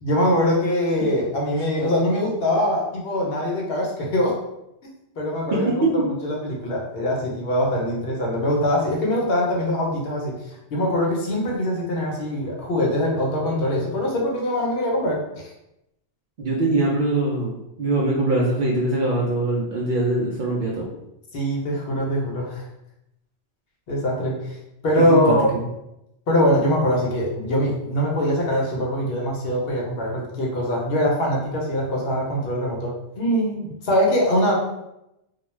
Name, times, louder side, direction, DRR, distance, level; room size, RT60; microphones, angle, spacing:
voice 1, 0.0-4.4 5.2-15.2 21.3-22.6 23.9-24.6 24.8-25.6 26.3-34.5, left 1 dB, 65° left, -2 dB, 0.8 m, -23 dB
voice 2, 5.5-5.9 16.4-17.5 17.8-20.9 25.1-25.6, right 2 dB, 60° right, -4 dB, 0.5 m, -22 dB
2.3 x 2.2 x 3.0 m, 0.85 s
omnidirectional pair, 1.2 m